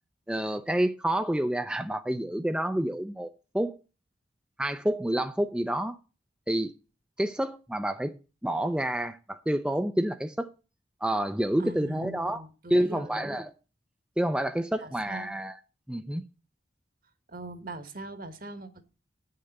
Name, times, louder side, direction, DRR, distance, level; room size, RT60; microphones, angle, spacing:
voice 1, 0.3-3.8 4.6-6.0 6.5-6.7 7.2-8.1 8.4-10.5 11.0-12.4 12.7-13.5 14.2-15.6 15.9-16.2, right 1 dB, 5° right, 0.4 m, -28 dB
voice 2, 11.6-13.3 14.8-15.4 17.3-18.9, right 2 dB, 50° right, 1.5 m, -42 dB
9.1 x 6.6 x 7.7 m
head